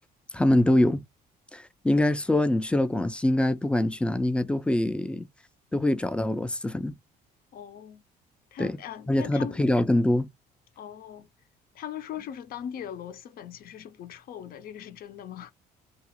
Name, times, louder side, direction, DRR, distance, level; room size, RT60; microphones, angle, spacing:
voice 1, 0.3-1.0 1.5-5.3 5.7-6.9 8.6-8.8 9.1-10.3, left 1 dB, 5° left, 0.3 m, -24 dB
voice 2, 7.5-8.0 8.5-9.6 10.8-11.3 11.7-15.5, left 9 dB, 60° left, 0.6 m, -40 dB
2.9 x 2.3 x 2.9 m
cardioid pair, 110°, 17 cm